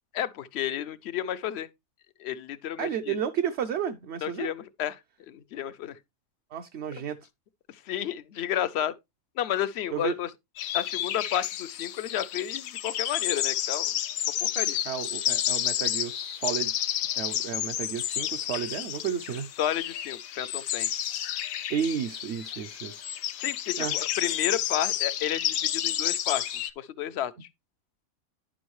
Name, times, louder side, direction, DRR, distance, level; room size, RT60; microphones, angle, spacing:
voice 1, 0.1-1.7 2.2-3.2 4.2-5.0 5.3-6.0 7.7-9.0 9.4-10.3 10.7-14.0 14.4-14.8 19.6-20.9 23.4-27.5, left 11 dB, 60° left, 0.8 m, -32 dB
voice 2, 2.8-4.5 6.5-7.2 9.9-10.1 14.9-16.8 17.2-19.5 21.7-23.1 23.8-23.9, right 8 dB, 60° right, 0.9 m, -32 dB
sound 1, 10.6-26.7, left 11 dB, 80° left, 1.1 m, -30 dB
10.5 x 6.2 x 3.1 m
omnidirectional pair, 1.4 m